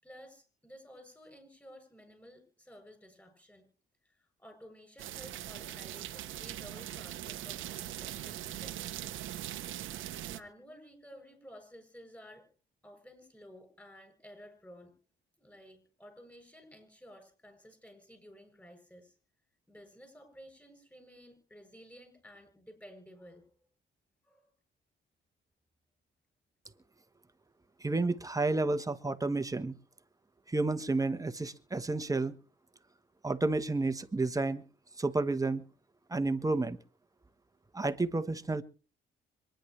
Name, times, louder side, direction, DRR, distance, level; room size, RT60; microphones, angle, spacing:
voice 1, 0.0-3.7 4.0-9.0 10.3-12.5 12.8-15.0 15.4-19.2 19.7-23.5 24.2-24.5, equal, 10° left, 5 dB, 7.9 m, -54 dB
sound 1, 5.0-10.4, right 13 dB, 80° right, 1.0 m, -41 dB
voice 2, 27.8-29.7 30.5-32.3 33.2-34.6 35.0-35.6 36.1-36.8 37.7-38.6, right 3 dB, 15° right, 10 dB, 1.2 m, -31 dB
26.0 x 10.0 x 3.3 m, 0.38 s
cardioid pair, 90°, 20 cm